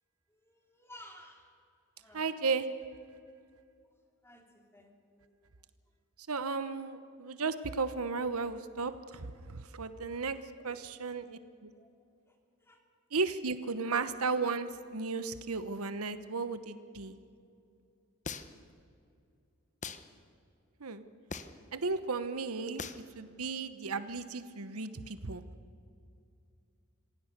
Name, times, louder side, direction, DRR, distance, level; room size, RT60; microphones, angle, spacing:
voice 1, 0.3-1.5 2.0-2.4 4.2-5.6 10.6-10.8 11.8-11.9 12.2-12.8, left 1 dB, 10° left, 3 dB, 2.8 m, -56 dB
voice 2, 2.1-2.7 6.3-11.7 13.1-17.1 20.8-21.0 21.7-22.8 23.1-25.4, right 4 dB, 80° right, 12 dB, 1.0 m, -35 dB
sound 1, 18.3-18.7 19.8-20.0 21.3-21.7 22.8-23.1, left 5 dB, 35° left, 0.9 m, -40 dB
26.0 x 17.0 x 6.7 m, 2.4 s
head